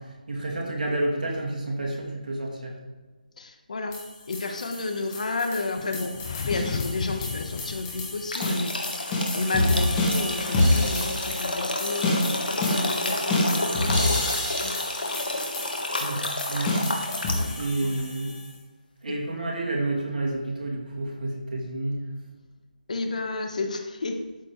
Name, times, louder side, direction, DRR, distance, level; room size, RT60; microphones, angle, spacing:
voice 1, 0.0-2.8 16.0-17.2 17.6-18.4 19.0-22.2, right 2 dB, 65° right, -1 dB, 2.5 m, -30 dB
voice 2, 3.4-4.0 4.3-14.3 14.6-14.8 17.3-17.5 17.8-18.1 19.1-19.2 22.9-24.2, left 3 dB, 55° left, 5 dB, 1.1 m, -32 dB
sound 1, 3.9-18.5, left 2 dB, 15° left, 1.6 m, -28 dB
sound 2, 6.1-8.3, left 6 dB, 30° left, 0.3 m, -34 dB
sound 3, 8.3-17.6, left 1 dB, 85° left, 1.5 m, -30 dB
13.0 x 4.3 x 3.3 m, 1.3 s
figure-of-eight pair, 160°, 5 cm